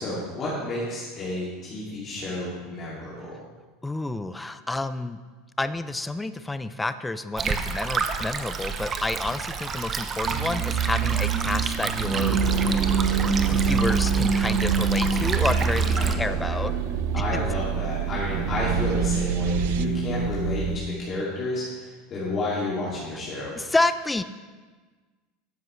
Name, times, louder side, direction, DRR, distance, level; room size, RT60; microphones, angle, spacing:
voice 1, 0.0-3.3 16.0-16.6 17.1-23.6, left 2 dB, 40° left, -7 dB, 2.5 m, -31 dB
voice 2, 3.8-5.2 5.6-12.4 13.5-16.7 17.3-17.4 23.6-24.2, left 2 dB, 10° left, 12 dB, 0.5 m, -29 dB
Stream, 7.4-16.1, right 5 dB, 30° right, 0.8 m, -30 dB
sound 1, 10.2-20.8, right 5 dB, 50° right, 1.2 m, -25 dB
sound 2, 12.4-19.9, right 19 dB, 75° right, 0.4 m, -32 dB
13.0 x 7.6 x 3.2 m, 1.4 s
hypercardioid pair, 100°, 0 cm